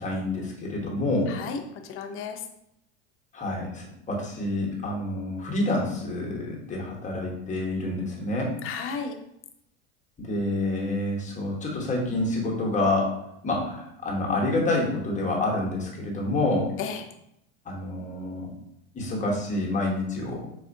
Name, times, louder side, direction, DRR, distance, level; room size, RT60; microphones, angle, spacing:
voice 1, 0.0-1.3 3.3-8.6 10.2-13.1 13.4-16.7 17.6-18.5 18.9-20.4, left 2 dB, 20° left, -2 dB, 1.0 m, -28 dB
voice 2, 1.3-2.4 8.6-9.2 16.8-17.1, left 6 dB, 40° left, 5 dB, 0.5 m, -33 dB
4.2 x 2.4 x 2.6 m, 0.79 s
supercardioid pair, 115°, 34 cm